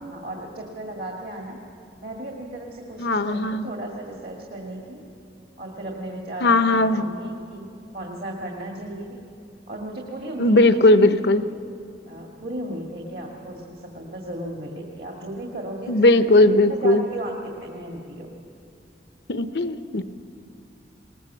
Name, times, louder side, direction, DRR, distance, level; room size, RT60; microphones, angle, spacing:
voice 1, 0.0-1.6 2.0-5.0 5.6-7.7 7.9-9.2 9.7-11.2 12.1-16.2 16.7-17.3 17.6-18.3, right 1 dB, 55° right, 0 dB, 2.0 m, -35 dB
voice 2, 3.0-3.6 6.4-7.1 10.4-11.4 15.9-17.0 19.3-20.0, left 2 dB, 75° left, 10 dB, 0.8 m, -18 dB
20.5 x 20.0 x 7.3 m, 2.5 s
head